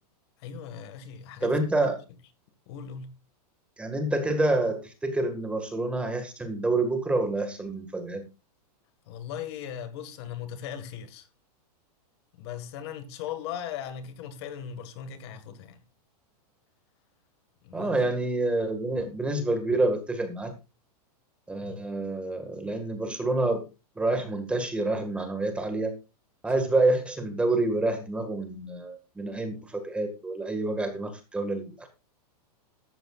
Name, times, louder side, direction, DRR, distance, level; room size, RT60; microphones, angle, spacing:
voice 1, 0.4-1.7 2.7-3.1 9.1-11.3 12.4-15.8 17.6-18.0 21.6-21.8, left 9 dB, 40° left, 1.8 m, -38 dB
voice 2, 1.4-2.0 3.8-8.2 17.7-20.5 21.5-23.6 23.9-25.9 26.4-31.9, right 2 dB, 5° right, 1.8 m, -27 dB
14.5 x 12.5 x 2.5 m
supercardioid pair, 170°, 20 cm